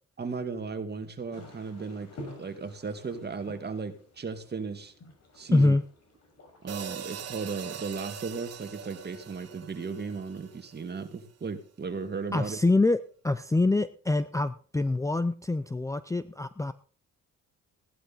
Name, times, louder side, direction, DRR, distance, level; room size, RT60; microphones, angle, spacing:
voice 1, 0.2-2.1 2.4-4.9 5.4-5.8 6.6-12.6, right 4 dB, 35° right, 2.2 m, -36 dB
sound 1, 1.3-9.4, left 1 dB, 60° left, 6.4 m, -50 dB
voice 2, 5.5-5.8 12.3-13.0 13.2-16.7, left 2 dB, 10° left, 0.6 m, -25 dB
sound 2, 6.7-11.0, right 8 dB, 55° right, 1.5 m, -42 dB
16.0 x 11.0 x 4.2 m
cardioid pair, 90°, 30 cm